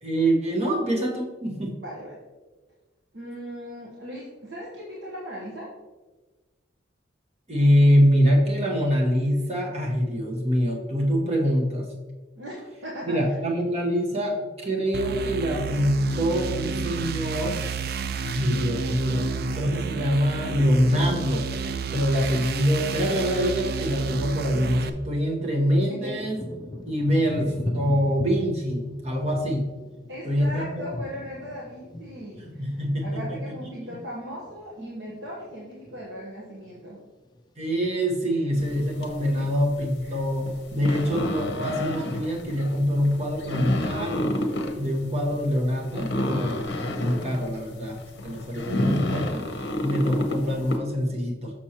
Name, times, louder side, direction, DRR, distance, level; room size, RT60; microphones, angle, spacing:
voice 1, 0.0-1.7 7.5-11.9 13.0-17.6 18.2-21.5 21.9-26.4 26.8-29.6 30.2-30.8 32.4-33.5 33.8-34.0 37.6-44.3 44.7-48.0 48.2-49.4 49.8-51.5, equal, 35° right, -1 dB, 1.1 m, -24 dB
voice 2, 1.8-2.2 3.1-5.7 12.4-13.2 25.9-26.1 30.1-37.0 39.4-39.5 40.0-40.2, equal, 70° right, -4 dB, 1.0 m, -38 dB
sound 1, 14.9-24.9, right 5 dB, 50° right, 0.3 m, -31 dB
Thunder / Rain, 25.4-34.9 35.2-36.1 36.6-37.0 37.3-38.1 38.7-38.8, left 1 dB, 20° left, 0.4 m, -38 dB
sound 2, 38.6-50.8, left 1 dB, 60° left, 0.7 m, -31 dB
6.2 x 6.1 x 2.9 m, 1.2 s
head